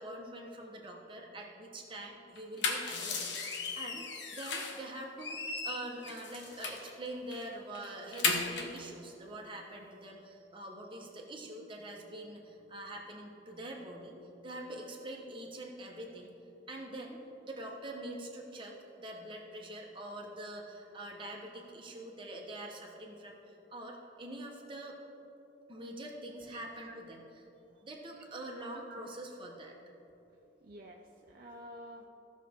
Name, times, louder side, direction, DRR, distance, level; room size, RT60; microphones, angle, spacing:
voice 1, 0.0-3.4 3.7-14.2 14.4-16.3 16.7-25.0 25.7-27.3 27.8-29.8, right 1 dB, 25° right, -1 dB, 1.2 m, -44 dB
sound 1, 2.4-4.8 5.2-6.9 7.3-7.4 7.7-8.8, left 4 dB, 65° left, 1.1 m, -35 dB
voice 2, 26.4-27.0 27.7-27.8 28.7-29.1 30.6-32.1, right 1 dB, 50° right, 0 dB, 0.7 m, -51 dB
16.0 x 6.3 x 3.7 m, 2.9 s
head